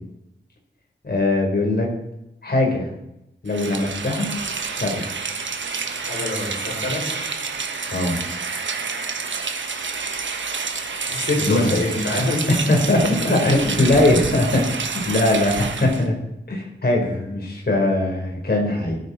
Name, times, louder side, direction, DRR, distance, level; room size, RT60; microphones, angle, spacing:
voice 1, 1.0-2.0 2.4-2.9 3.4-4.3 4.7-5.2 7.8-8.2 11.4-11.8 12.5-16.2 16.5-19.0, left 2 dB, 55° left, 1 dB, 4.3 m, -21 dB
Rain, 3.5-16.1, right 5 dB, 75° right, 1.3 m, -29 dB
voice 2, 6.0-7.1 11.1-12.5 13.5-13.8, left 2 dB, 85° left, -3 dB, 6.2 m, -25 dB
18.5 x 9.1 x 4.3 m, 0.87 s
wide cardioid pair, 70°, 19 cm